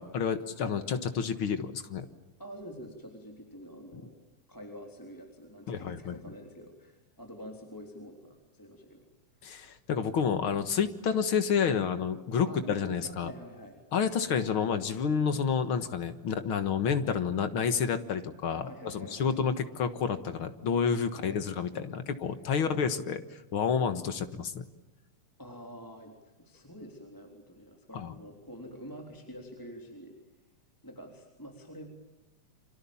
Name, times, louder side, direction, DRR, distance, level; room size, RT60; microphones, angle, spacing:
voice 1, 0.0-2.1 5.7-6.2 9.4-13.3 13.9-24.6 27.9-28.2, left 6 dB, 50° left, 10 dB, 1.9 m, -29 dB
voice 2, 2.4-4.1 4.5-9.0 12.4-13.8 18.6-19.4 21.1-21.4 22.6-22.8 25.4-30.1 30.8-31.9, equal, 5° left, 2 dB, 3.2 m, -46 dB
30.0 x 26.0 x 7.2 m, 1.0 s
omnidirectional pair, 3.6 m